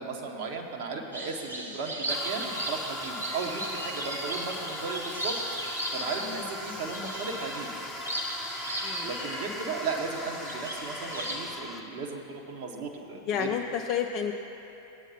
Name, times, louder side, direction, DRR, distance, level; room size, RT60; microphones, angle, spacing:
voice 1, 0.0-5.4 5.9-7.8 9.0-13.5, right 4 dB, 45° right, 1 dB, 1.3 m, -36 dB
sound 1, 1.1-11.4, right 1 dB, 80° right, 1.4 m, -36 dB
Toilet flush, 2.1-11.8, left 1 dB, ahead, 0.9 m, -39 dB
voice 2, 13.3-14.3, left 8 dB, 35° left, 2 dB, 0.4 m, -30 dB
18.0 x 8.9 x 2.9 m, 3.0 s
figure-of-eight pair, 90°, 0 cm